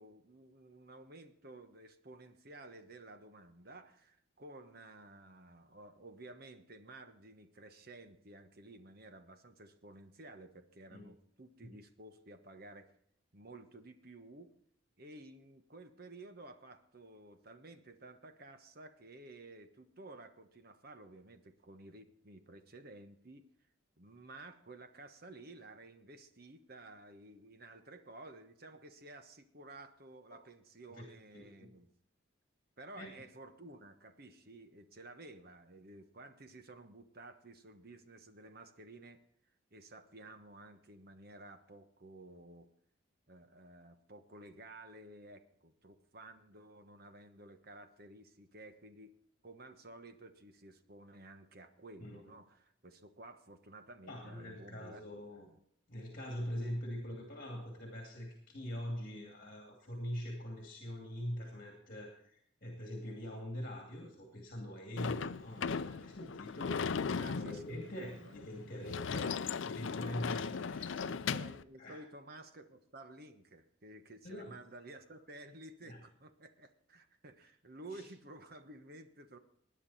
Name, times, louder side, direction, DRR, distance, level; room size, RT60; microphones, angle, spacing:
voice 1, 0.0-12.9 13.3-14.5 15.0-23.5 24.0-31.9 32.8-39.2 39.7-42.7 43.3-49.1 49.4-55.0 55.4-55.6 67.1-68.4 70.8-79.4, right 2 dB, 50° right, 9 dB, 1.2 m, -53 dB
voice 2, 31.3-31.7 33.0-33.1 52.0-52.3 54.1-55.5 55.9-71.1 71.8-72.0 74.2-74.6 75.8-76.0 77.9-78.1, equal, 45° left, 1 dB, 2.5 m, -43 dB
Sliding door / Slam, 65.0-71.6, left 5 dB, 70° left, 0.5 m, -37 dB
19.5 x 9.8 x 4.2 m, 0.69 s
head